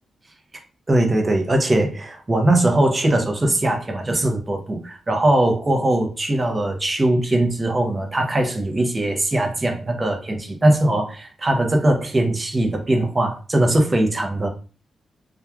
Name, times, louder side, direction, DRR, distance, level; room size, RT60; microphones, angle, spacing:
voice 1, 0.9-14.5, right 1 dB, 30° right, 3 dB, 0.7 m, -20 dB
3.0 x 2.3 x 2.3 m, 0.35 s
cardioid pair, 80°, 0 cm